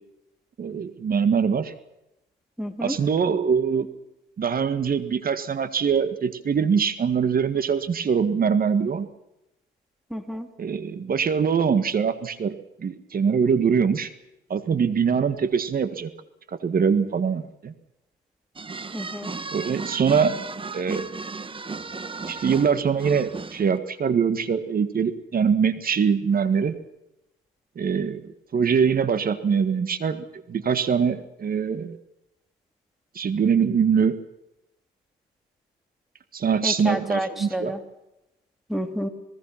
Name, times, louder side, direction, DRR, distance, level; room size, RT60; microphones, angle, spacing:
voice 1, 0.6-1.7 2.8-3.9 4.4-9.1 10.6-14.1 14.5-16.1 16.6-17.7 19.5-20.3 20.7-21.1 22.3-26.8 27.8-32.0 33.2-34.2 36.3-37.7, right 6 dB, 45° right, 12 dB, 1.9 m, -23 dB
voice 2, 2.6-2.9 10.1-10.5 18.9-19.3 36.6-37.8 38.7-39.1, equal, ahead, 8 dB, 3.0 m, -29 dB
sound 1, 18.6-23.8, right 4 dB, 25° right, 1.2 m, -35 dB
27.0 x 19.5 x 5.9 m, 0.91 s
cardioid pair, 90°, 20 cm